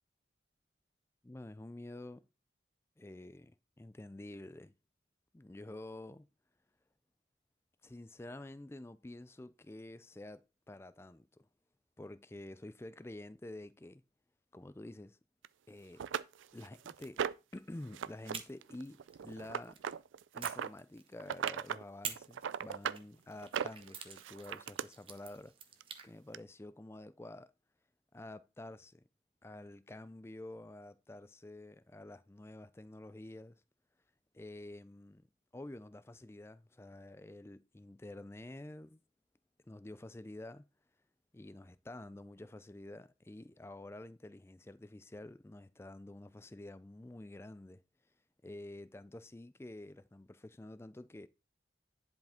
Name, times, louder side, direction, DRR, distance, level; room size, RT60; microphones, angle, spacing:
voice 1, 1.2-2.3 3.0-4.7 5.3-6.3 7.8-11.5 12.0-14.0 14.5-15.2 15.7-16.1 16.5-17.2 17.5-19.8 20.3-25.5 26.0-27.5 28.1-29.0 29.4-33.6 34.3-35.3 35.5-39.0 39.7-40.6 41.3-47.8 48.4-51.3, left 1 dB, 15° left, 0.3 m, -49 dB
sound 1, 15.4-15.5 16.0-17.5 17.9-18.3 18.6-20.7 21.2-21.8 22.2-23.0 23.4-24.8 25.8-25.9 26.3-26.4, right 8 dB, 90° right, 0.4 m, -38 dB
sound 2, 18.3-19.8 20.4-21.4 22.0-26.1, right 6 dB, 30° right, 0.8 m, -48 dB
10.5 x 4.8 x 3.5 m
head